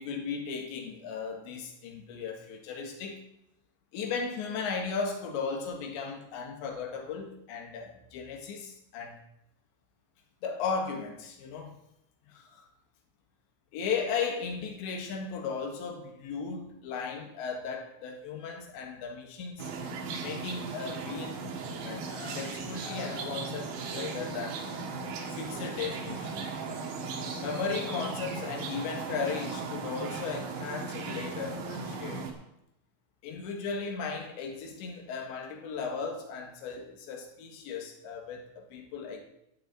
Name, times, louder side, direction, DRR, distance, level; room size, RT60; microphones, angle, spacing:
voice 1, 0.0-3.2 3.9-9.2 10.4-11.8 12.3-12.7 13.7-19.7 20.2-24.6 25.3-26.5 27.4-32.3 33.2-39.2, left 5 dB, 75° left, 3 dB, 3.9 m, -36 dB
sound 1, 19.6-32.3, right 4 dB, 70° right, 3.7 m, -37 dB
12.0 x 6.9 x 9.0 m, 0.82 s
omnidirectional pair, 5.3 m